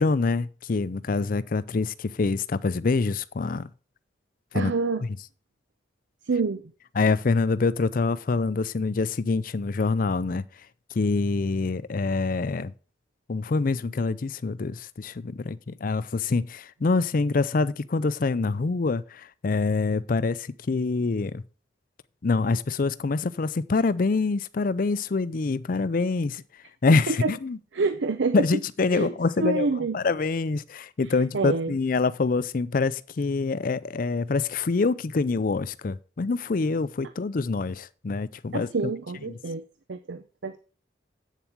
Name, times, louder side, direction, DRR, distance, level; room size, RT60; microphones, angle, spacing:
voice 1, 0.0-3.7 4.5-4.7 7.0-10.4 10.9-12.7 13.3-21.4 22.2-26.4 26.8-27.6 28.3-29.7 29.9-38.7 39.3-39.4, left 3 dB, 50° left, 0.5 m, -25 dB
voice 2, 4.5-5.0 6.3-6.6 27.1-27.3 27.7-28.5 28.9-29.1 29.4-30.0 31.3-31.7 38.5-39.6 39.9-40.6, right 4 dB, 85° right, 0.6 m, -27 dB
8.3 x 7.2 x 4.5 m
head